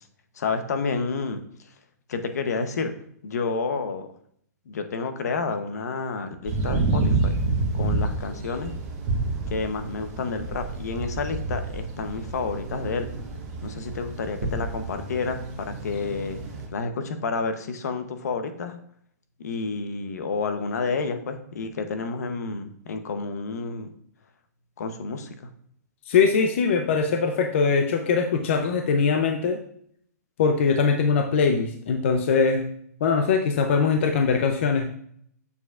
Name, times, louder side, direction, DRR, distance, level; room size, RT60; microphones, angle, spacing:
voice 1, 0.4-1.4 2.1-2.9 3.2-4.1 4.7-7.3 7.7-8.7 9.5-13.1 13.6-16.4 16.7-18.8 19.4-23.9 24.8-25.3, left 4 dB, 65° left, 8 dB, 0.9 m, -30 dB
sound 1, 6.4-16.7, right 3 dB, 30° right, 1.3 m, -29 dB
voice 2, 26.1-29.6 30.4-32.7 33.0-34.9, left 5 dB, 45° left, 5 dB, 0.5 m, -22 dB
6.9 x 6.7 x 2.4 m, 0.65 s
hypercardioid pair, 170°, 9 cm